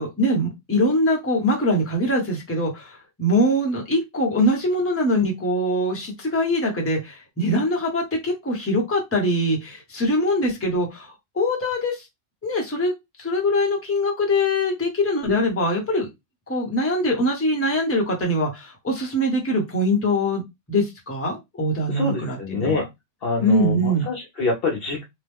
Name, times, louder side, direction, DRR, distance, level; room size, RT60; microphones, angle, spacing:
voice 1, 0.0-12.0 12.4-12.9 13.2-16.1 16.5-20.4 20.7-22.8 23.4-24.1, left 1 dB, 15° left, 0 dB, 0.8 m, -23 dB
voice 2, 21.9-22.8 23.2-25.0, left 3 dB, 60° left, 0 dB, 0.7 m, -25 dB
2.9 x 2.1 x 3.4 m, 0.20 s
omnidirectional pair, 1.2 m